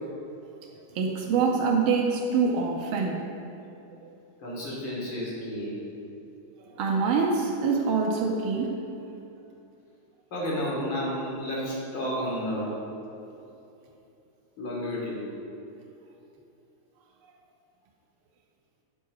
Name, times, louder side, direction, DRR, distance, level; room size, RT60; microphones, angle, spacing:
voice 1, 0.9-3.2 4.0-4.1 6.7-9.1, right 5 dB, 85° right, 0 dB, 1.6 m, -25 dB
voice 2, 4.4-5.7 10.3-12.8 14.6-15.2, equal, 75° left, -6 dB, 3.0 m, -31 dB
7.3 x 4.6 x 6.3 m, 2.8 s
omnidirectional pair, 2.2 m